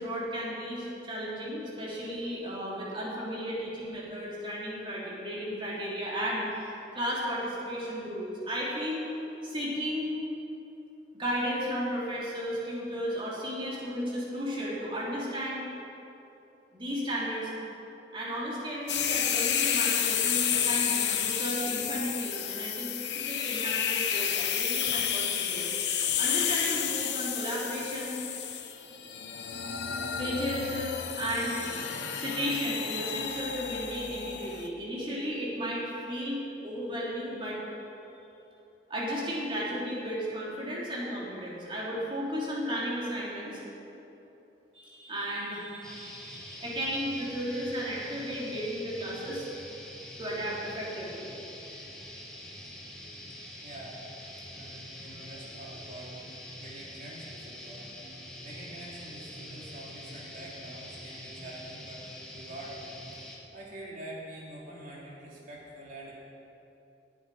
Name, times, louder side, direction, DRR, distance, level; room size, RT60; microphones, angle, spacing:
voice 1, 0.0-9.1 9.4-10.2 11.1-15.7 16.7-17.5 18.1-25.7 26.2-28.2 30.2-31.6 32.1-37.6 38.9-43.6 44.7-49.5 50.2-51.3, equal, 30° right, -6 dB, 3.1 m, -34 dB
sound 1, 18.9-34.7, left 8 dB, 75° left, 0.9 m, -31 dB
sound 2, 45.8-63.4, left 1 dB, 5° left, 1.6 m, -45 dB
voice 2, 53.6-54.0 54.5-56.2 56.6-57.9 58.4-62.8 63.5-66.2, right 1 dB, 50° right, -5 dB, 3.0 m, -45 dB
18.5 x 8.1 x 4.9 m, 3.0 s
head